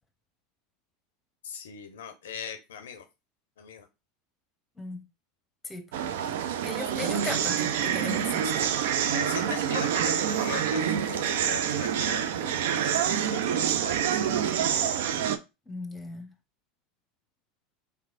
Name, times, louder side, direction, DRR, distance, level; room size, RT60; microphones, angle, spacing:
voice 1, 1.4-3.1 3.6-3.9 9.1-14.9, left 7 dB, 75° left, 0.4 m, -40 dB
sound 1, 5.9-15.4, right 9 dB, 70° right, 0.3 m, -27 dB
voice 2, 6.6-8.7 15.7-16.3, left 2 dB, 15° left, 0.8 m, -37 dB
3.3 x 3.1 x 2.4 m
hypercardioid pair, 80°, 0 cm